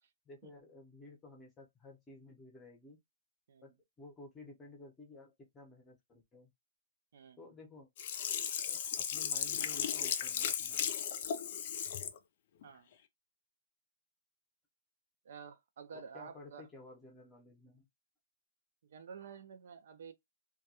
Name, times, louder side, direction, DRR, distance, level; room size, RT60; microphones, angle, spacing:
voice 1, 0.2-3.0 3.6-6.5 7.4-7.9 8.7-11.0 15.9-17.9, left 2 dB, 10° left, 0.7 m, -54 dB
Sink (filling or washing), 8.0-12.2 12.6-12.7, left 9 dB, 45° left, 0.4 m, -36 dB
voice 2, 15.2-16.7 18.8-20.1, right 6 dB, 60° right, 0.4 m, -50 dB
2.2 x 2.2 x 2.7 m
hypercardioid pair, 165°, 0 cm